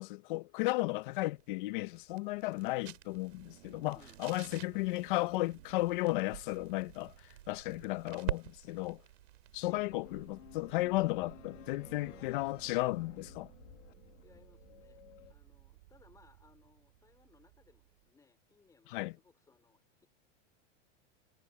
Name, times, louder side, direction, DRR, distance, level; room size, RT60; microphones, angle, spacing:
voice 1, 0.0-7.1 7.5-9.0 9.5-13.5 18.9-19.1, left 20 dB, 45° left, 0.8 m, -34 dB
sound 1, 0.9-11.5, right 13 dB, 80° right, 6.1 m, -47 dB
sound 2, 3.0-7.5 8.5-8.6 9.0-18.1, right 18 dB, 55° right, 1.7 m, -59 dB
voice 2, 3.9-4.7 9.6-10.0 14.2-15.0 15.3-20.1, left 4 dB, 10° left, 4.1 m, -65 dB
sound 3, 9.7-15.3, left 14 dB, 80° left, 2.2 m, -56 dB
supercardioid pair, 165°, 37 cm